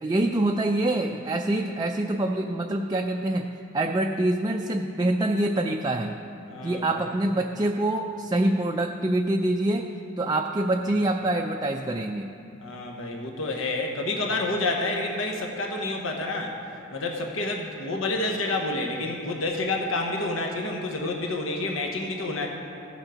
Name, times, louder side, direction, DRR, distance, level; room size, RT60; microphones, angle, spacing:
voice 1, 0.0-6.2 6.6-9.9 10.2-12.4, right 1 dB, 20° right, 2 dB, 0.3 m, -25 dB
voice 2, 6.5-7.1 12.6-16.5 16.9-22.5, left 2 dB, 80° left, 1 dB, 1.1 m, -29 dB
15.0 x 7.2 x 5.1 m, 2.7 s
head